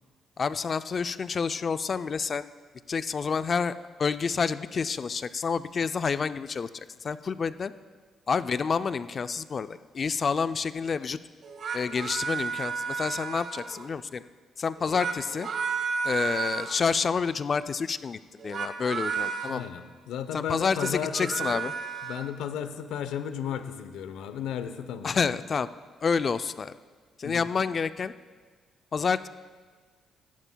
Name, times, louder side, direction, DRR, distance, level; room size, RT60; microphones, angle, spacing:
voice 1, 0.4-2.5 2.9-7.7 8.3-11.2 11.7-14.2 14.6-15.5 16.0-19.6 20.3-21.7 25.0-25.7 26.0-26.8 27.2-28.1 28.9-29.3, left 5 dB, 45° left, 13 dB, 0.4 m, -29 dB
sound 1, 11.4-13.9 14.7-16.8 18.4-19.5 20.6-22.3, right 5 dB, 60° right, 1.2 m, -32 dB
voice 2, 19.5-21.6 22.0-25.4 27.2-27.5, left 8 dB, 85° left, 10 dB, 0.7 m, -34 dB
16.5 x 12.0 x 2.3 m, 1.5 s
cardioid pair, 90°, 0 cm